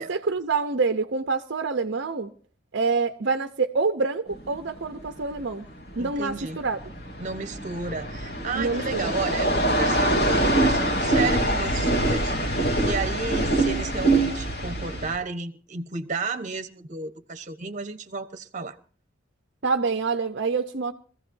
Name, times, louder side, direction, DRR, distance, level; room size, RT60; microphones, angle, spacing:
voice 1, 0.0-2.3 2.7-5.7 6.0-6.8 8.5-9.1 19.6-20.9, right 4 dB, 60° right, 0.8 m, -26 dB
sound 1, 4.3-15.2, right 1 dB, 55° left, 2.8 m, -24 dB
voice 2, 6.0-6.6 7.2-12.3 12.8-18.8, right 4 dB, 40° right, 1.1 m, -33 dB
24.0 x 15.5 x 2.7 m
head